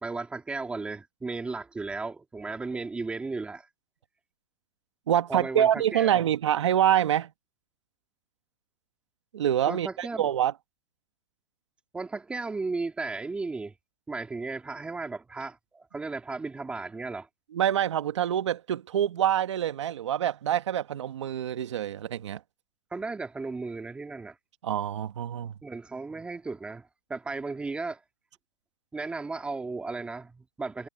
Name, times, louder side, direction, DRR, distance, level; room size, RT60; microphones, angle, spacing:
voice 1, 0.0-3.7 5.3-6.3 9.7-10.3 11.9-13.7 14.1-17.3 22.9-24.4 25.6-28.0 28.9-30.9, right 3 dB, 5° right, 2.3 m, -35 dB
voice 2, 5.1-7.3 9.3-10.5 17.5-22.4 24.6-25.6, right 10 dB, 80° right, 1.6 m, -26 dB
supercardioid pair, 160°, 15 cm